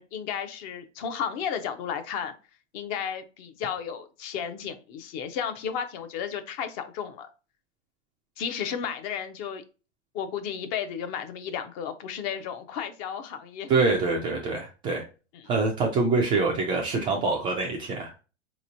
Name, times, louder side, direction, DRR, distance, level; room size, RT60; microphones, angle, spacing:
voice 1, 0.0-2.3 2.7-7.3 8.4-9.6 10.1-13.7, left 7 dB, 35° left, 0.5 m, -33 dB
voice 2, 13.7-15.0 15.5-18.2, right 3 dB, 15° right, 0.3 m, -25 dB
4.2 x 2.9 x 2.6 m
hypercardioid pair, 110°, 36 cm